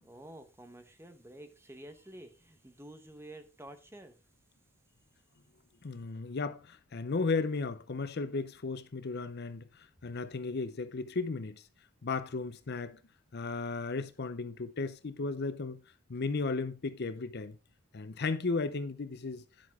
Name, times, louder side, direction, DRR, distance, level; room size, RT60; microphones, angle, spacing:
voice 1, 0.0-4.2, right 1 dB, 10° right, 1.0 m, -50 dB
voice 2, 5.8-11.6 12.0-13.0 13.3-15.8 16.1-17.6 17.9-19.4, left 4 dB, 45° left, 0.6 m, -35 dB
10.5 x 7.6 x 3.6 m
head